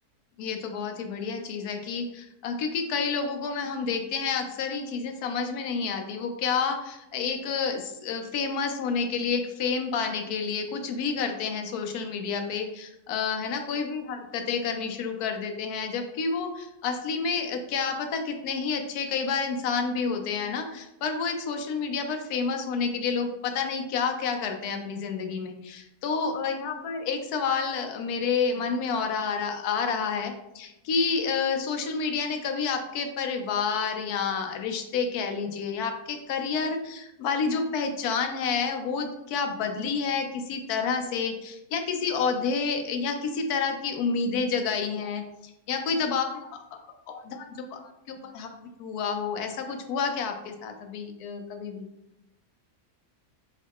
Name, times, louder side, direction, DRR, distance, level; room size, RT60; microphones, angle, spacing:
voice 1, 0.4-51.9, left 5 dB, 85° left, 5 dB, 1.1 m, -29 dB
4.5 x 2.4 x 3.5 m, 0.87 s
omnidirectional pair, 1.6 m